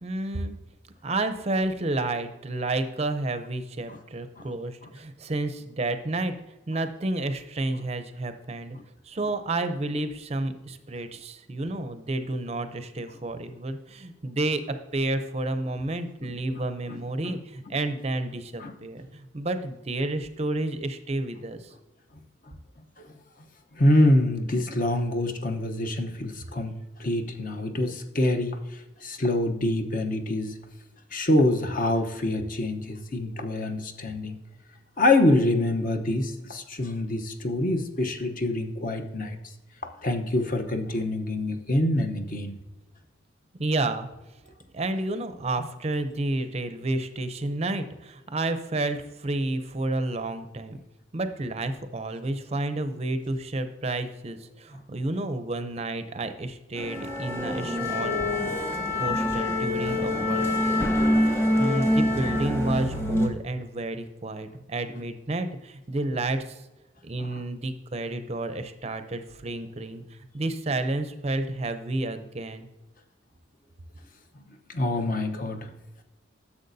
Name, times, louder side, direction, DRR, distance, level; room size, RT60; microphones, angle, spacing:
voice 1, 0.0-0.6 1.0-6.3 6.7-8.8 9.0-21.7 43.6-44.1 44.7-50.8 51.1-60.9 61.6-66.6 67.0-72.7, right 2 dB, 35° right, 9 dB, 0.5 m, -30 dB
voice 2, 16.9-17.3 18.6-18.7 23.0-23.1 23.8-26.7 27.0-28.6 29.0-30.5 31.1-34.4 35.0-39.4 39.8-42.6 74.7-75.7, left 1 dB, 45° left, 6 dB, 0.8 m, -25 dB
sound 1, 56.8-63.3, left 1 dB, 15° left, 1.0 m, -25 dB
10.5 x 7.1 x 2.6 m, 1.0 s
head